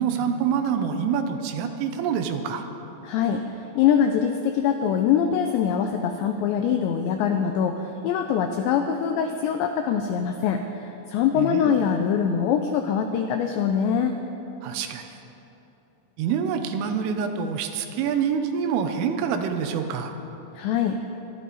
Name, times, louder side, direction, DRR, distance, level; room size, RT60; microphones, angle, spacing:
voice 1, 0.0-2.7 11.4-11.8 14.6-15.0 16.2-20.2, right 7 dB, 80° right, 6 dB, 3.4 m, -26 dB
voice 2, 3.0-3.4 3.8-14.2 20.6-21.0, left 8 dB, 85° left, 5 dB, 2.5 m, -23 dB
23.5 x 12.5 x 4.1 m, 3.0 s
omnidirectional pair, 5.9 m